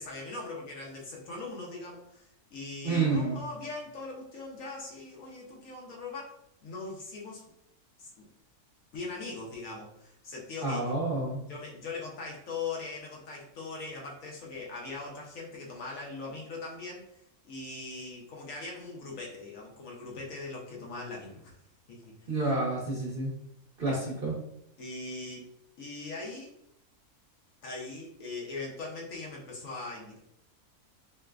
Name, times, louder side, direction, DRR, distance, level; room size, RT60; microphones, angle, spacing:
voice 1, 0.0-6.3 6.6-7.4 8.0-8.3 8.9-10.9 11.5-21.6 21.9-22.3 23.8-24.0 24.8-25.5 25.8-26.5 27.6-30.2, left 3 dB, 65° left, -2 dB, 1.0 m, -40 dB
voice 2, 2.8-3.4 10.6-11.4 22.3-23.3 23.8-24.3, right 3 dB, 45° right, -5 dB, 0.8 m, -29 dB
4.4 x 2.1 x 2.3 m, 0.75 s
omnidirectional pair, 1.6 m